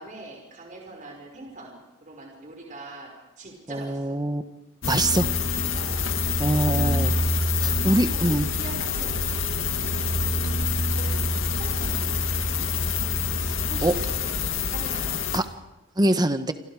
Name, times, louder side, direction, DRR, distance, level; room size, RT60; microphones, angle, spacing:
voice 1, 0.0-4.2 5.7-6.0 6.5-9.2 9.8-10.5 10.9-12.8 13.6-15.2, right 2 dB, 40° right, 1 dB, 5.4 m, -43 dB
voice 2, 3.7-4.4 4.8-5.3 6.4-7.1 7.6-8.5 13.8-13.9 15.3-15.4 16.0-16.5, right 1 dB, 20° right, 9 dB, 1.4 m, -23 dB
sound 1, 4.8-15.4, left 3 dB, 75° left, 2.3 m, -26 dB
29.0 x 25.5 x 5.0 m, 1.0 s
head